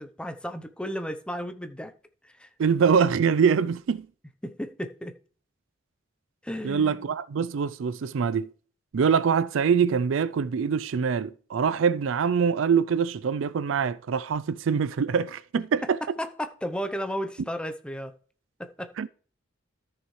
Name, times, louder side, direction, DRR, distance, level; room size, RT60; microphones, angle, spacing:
voice 1, 0.0-1.9 2.2-2.5 4.4-5.2 6.4-7.1 16.2-18.1 18.6-18.9, equal, 5° left, 0.7 m, -34 dB
voice 2, 2.6-4.1 6.6-8.5 8.9-16.0 19.0-19.1, right 6 dB, 75° right, 0.4 m, -24 dB
13.5 x 6.4 x 3.2 m
head